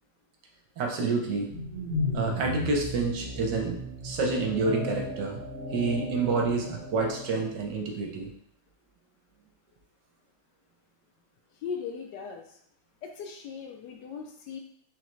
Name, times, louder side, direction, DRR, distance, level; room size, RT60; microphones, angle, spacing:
voice 1, 0.8-1.5 2.1-3.8 4.0-5.4 5.7-8.3, right 3 dB, 70° right, 1 dB, 1.3 m, -28 dB
sound 1, 1.2-7.5, left 1 dB, 40° right, 0.8 m, -35 dB
voice 2, 11.6-12.6 13.0-14.6, left 6 dB, 75° left, 3 dB, 1.1 m, -38 dB
3.9 x 3.2 x 3.1 m, 0.67 s
omnidirectional pair, 2.0 m